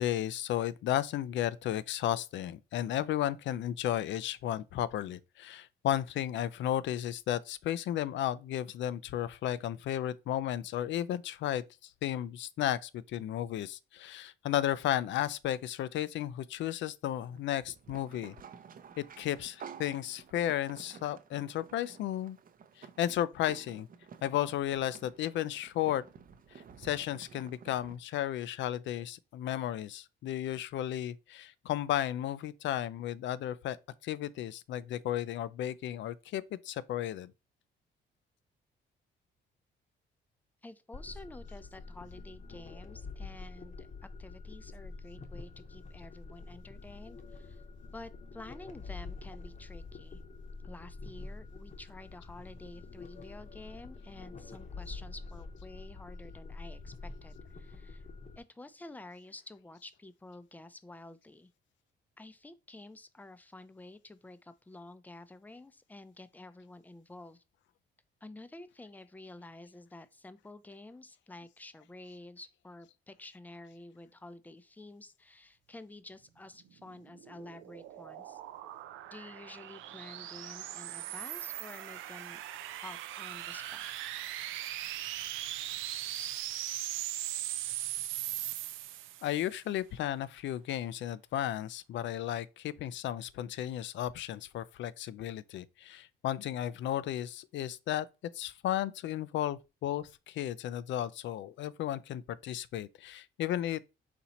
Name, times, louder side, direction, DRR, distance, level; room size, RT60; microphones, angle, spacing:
voice 1, 0.0-18.4 19.0-22.4 22.8-23.9 24.2-26.0 26.8-33.8 34.0-37.3 89.2-98.1 98.3-103.8, left 12 dB, 70° left, 0.4 m, -34 dB
sound 1, 17.2-28.0, right 7 dB, 45° right, 0.6 m, -52 dB
voice 2, 40.6-47.6 47.9-50.2 50.6-58.1 58.4-61.5 62.2-67.4 68.2-78.4 79.1-82.4 82.8-84.1, left 2 dB, 10° left, 0.5 m, -50 dB
sound 2, 40.9-58.4, left 3 dB, 35° left, 0.9 m, -46 dB
sound 3, 76.8-89.4, right 13 dB, 90° right, 0.4 m, -39 dB
4.2 x 2.8 x 4.2 m
cardioid pair, 90°, 20 cm